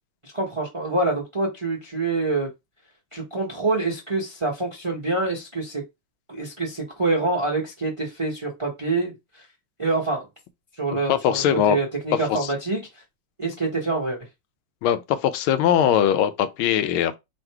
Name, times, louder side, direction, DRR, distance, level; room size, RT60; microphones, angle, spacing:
voice 1, 0.3-2.5 3.1-5.8 6.3-9.4 9.8-10.3 10.8-13.0 13.4-14.2, right 3 dB, 30° right, 0.5 m, -26 dB
voice 2, 11.1-11.8 12.4-12.5 14.8-17.2, left 10 dB, 85° left, 1.5 m, -21 dB
3.8 x 2.4 x 4.5 m
omnidirectional pair, 2.2 m